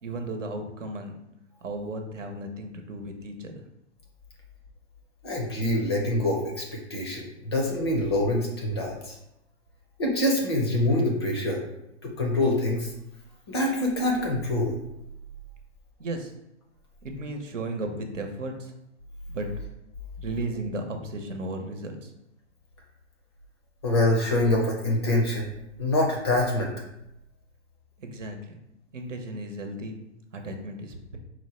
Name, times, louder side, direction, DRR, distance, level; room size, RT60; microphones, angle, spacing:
voice 1, 0.0-1.2 1.6-3.6 16.0-16.3 17.0-18.7 19.3-19.5 20.2-22.1 28.0-28.5 28.9-30.0 30.3-31.2, right 2 dB, 90° right, 4 dB, 1.0 m, -35 dB
voice 2, 5.2-9.2 10.0-11.6 12.0-12.9 13.5-14.8 23.8-25.5 25.8-26.7, left 1 dB, 25° left, 0 dB, 0.4 m, -25 dB
4.4 x 2.2 x 4.3 m, 0.84 s
hypercardioid pair, 150°, 36 cm